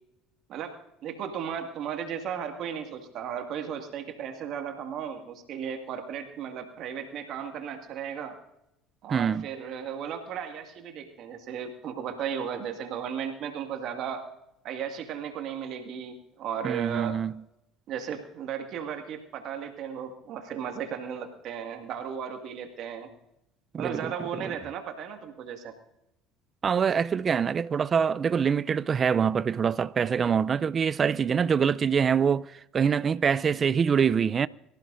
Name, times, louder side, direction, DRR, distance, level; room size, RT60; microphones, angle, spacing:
voice 1, 1.0-8.4 9.0-14.3 14.6-17.1 17.9-23.1 23.8-25.7, right 8 dB, 60° right, 2.0 m, -35 dB
voice 2, 9.1-9.5 16.6-17.4 23.7-24.5 26.6-34.5, right 7 dB, 40° right, 0.5 m, -25 dB
24.5 x 15.5 x 2.6 m
hypercardioid pair, 65°, 0 cm